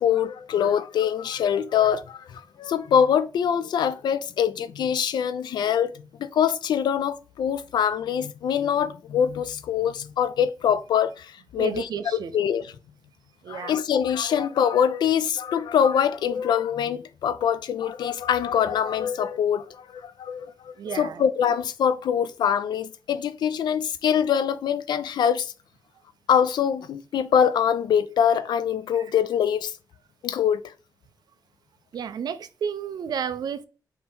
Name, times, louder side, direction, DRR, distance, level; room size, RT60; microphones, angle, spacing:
voice 1, 0.0-5.9 6.2-12.7 13.5-25.5 26.3-29.7 30.2-30.6, left 8 dB, 90° left, 0.4 m, -24 dB
voice 2, 11.6-12.3 13.4-13.7 20.8-21.3 28.9-29.1 31.9-33.7, right 7 dB, 70° right, 0.5 m, -31 dB
3.7 x 2.7 x 4.2 m
wide cardioid pair, 130°, 7 cm